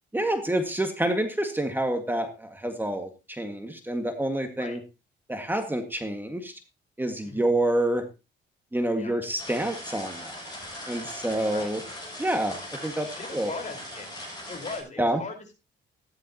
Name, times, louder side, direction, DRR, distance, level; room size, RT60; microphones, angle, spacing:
voice 1, 0.1-4.8 5.3-6.5 7.0-8.0 8.7-10.4 10.9-11.8 12.2-12.5 12.8-13.5 15.0-15.2, right 1 dB, 10° right, 6 dB, 1.9 m, -27 dB
sound 1, 9.4-14.8, left 1 dB, 20° left, 7.4 m, -40 dB
voice 2, 13.1-14.1 14.5-15.5, left 4 dB, 35° left, 4 dB, 4.6 m, -39 dB
15.0 x 11.0 x 2.9 m, 0.28 s
cardioid pair, 90°, 20 cm